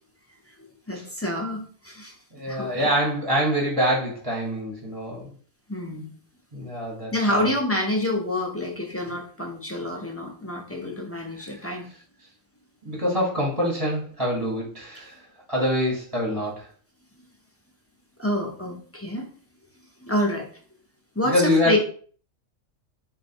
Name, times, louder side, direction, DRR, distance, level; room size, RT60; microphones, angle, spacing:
voice 1, 0.9-2.2 2.5-2.7 5.7-6.1 7.1-11.9 18.2-19.3 20.0-20.5 21.2-21.8, left 1 dB, 20° left, 1 dB, 0.4 m, -27 dB
voice 2, 2.3-5.3 6.5-7.5 11.4-11.7 12.8-15.2 15.5-16.7 21.2-21.8, equal, 20° right, -3 dB, 0.9 m, -25 dB
4.1 x 2.2 x 4.2 m, 0.44 s
omnidirectional pair, 1.4 m